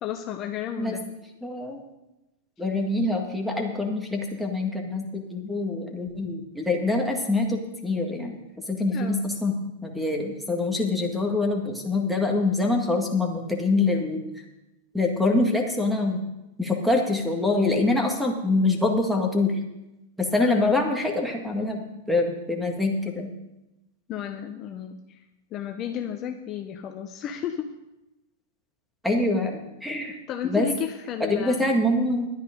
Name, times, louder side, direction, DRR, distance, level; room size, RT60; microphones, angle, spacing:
voice 1, 0.0-1.0 8.9-9.4 20.4-20.8 24.1-25.2 25.5-27.7 30.3-31.8, left 9 dB, 35° left, 5 dB, 0.8 m, -32 dB
voice 2, 1.4-1.8 2.6-8.4 8.7-9.5 9.8-14.2 14.9-16.2 16.6-19.6 20.2-21.8 22.1-23.3 29.0-30.2 30.4-30.7 31.2-32.3, left 2 dB, ahead, 2 dB, 1.9 m, -25 dB
11.5 x 9.5 x 5.2 m, 0.96 s
hypercardioid pair, 120°, 0 cm